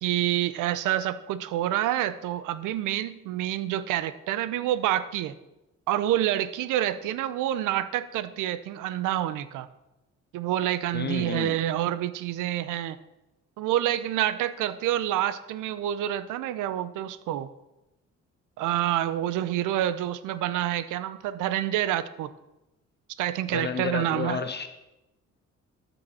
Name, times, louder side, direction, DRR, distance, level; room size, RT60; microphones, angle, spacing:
voice 1, 0.0-5.3 5.9-9.7 10.3-13.0 13.6-17.5 18.6-22.3 23.2-24.4, right 12 dB, 90° right, 16 dB, 0.6 m, -27 dB
voice 2, 10.9-11.6 23.5-24.7, left 6 dB, 35° left, 9 dB, 0.6 m, -31 dB
13.0 x 5.3 x 4.2 m, 0.94 s
cardioid pair, 90°, 30 cm